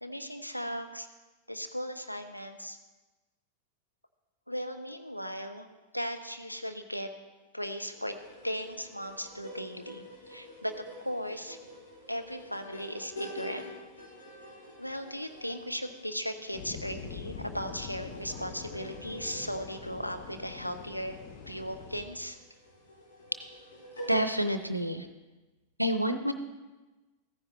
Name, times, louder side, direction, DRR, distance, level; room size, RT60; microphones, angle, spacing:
voice 1, 0.0-1.1 1.5-2.8 4.5-5.7 5.9-7.1 7.5-8.2 8.4-11.6 12.1-13.6 14.8-21.2 21.5-22.4, equal, 90° left, 6 dB, 0.7 m, -37 dB
sound 1, 7.9-24.8, left 1 dB, 70° left, 4.1 m, -48 dB
sound 2, 16.5-22.1, left 6 dB, 45° left, 1.1 m, -44 dB
voice 2, 24.1-25.1 25.8-26.3, equal, 90° right, 9 dB, 0.6 m, -28 dB
15.0 x 9.7 x 3.1 m, 1.2 s
figure-of-eight pair, 90°, 0 cm